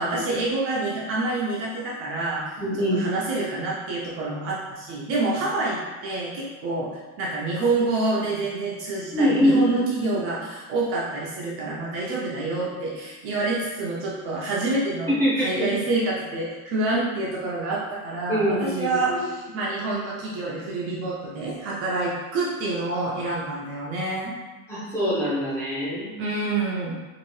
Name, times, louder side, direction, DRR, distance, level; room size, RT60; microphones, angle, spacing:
voice 1, 0.0-2.4 2.9-15.1 15.4-24.3 26.2-26.9, right 2 dB, 40° right, -4 dB, 0.5 m, -27 dB
voice 2, 2.6-3.1 9.1-10.2 15.1-15.7 18.3-19.2 24.7-26.1, equal, 5° left, -10 dB, 0.7 m, -24 dB
2.7 x 2.6 x 3.0 m, 1.3 s
cardioid pair, 170°, 34 cm